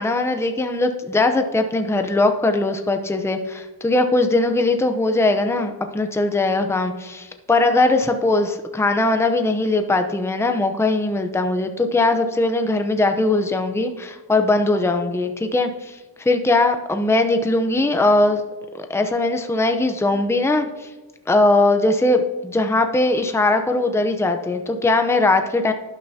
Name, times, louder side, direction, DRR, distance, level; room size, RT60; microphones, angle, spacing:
voice 1, 0.0-18.4 18.7-20.9 21.3-25.7, left 2 dB, 5° left, 6 dB, 0.7 m, -20 dB
12.0 x 9.8 x 2.8 m, 1.2 s
wide cardioid pair, 110°, 43 cm